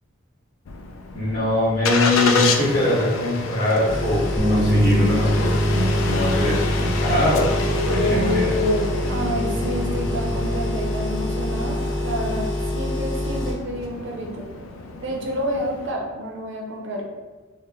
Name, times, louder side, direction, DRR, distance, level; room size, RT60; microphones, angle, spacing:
Engine starting, 0.7-15.9, left 3 dB, 75° left, 0.4 m, -29 dB
voice 1, 1.1-7.5 7.8-8.5, left 1 dB, 45° left, -7 dB, 1.4 m, -22 dB
sound 1, 3.9-13.5, left 1 dB, 60° left, 1.0 m, -26 dB
sound 2, 4.4-10.6, equal, 10° right, 0.5 m, -25 dB
voice 2, 9.1-12.5 12.7-14.5 15.0-17.0, equal, 60° right, -1 dB, 0.6 m, -29 dB
4.5 x 2.1 x 2.9 m, 1.3 s
head